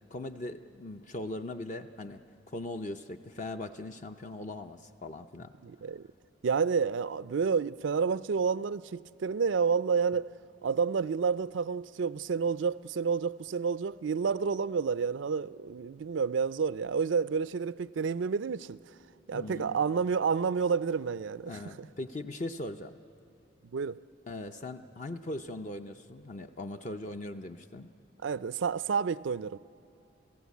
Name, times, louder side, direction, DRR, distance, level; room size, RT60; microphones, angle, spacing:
voice 1, 0.1-2.2 2.5-5.5 19.3-19.8 21.5-23.0 24.3-27.9, left 2 dB, 40° left, 0.5 m, -40 dB
voice 2, 5.6-6.0 6.4-10.3 10.6-18.8 19.3-21.5 23.7-24.0 28.2-29.6, right 5 dB, 80° right, 0.4 m, -29 dB
29.5 x 16.0 x 8.3 m
head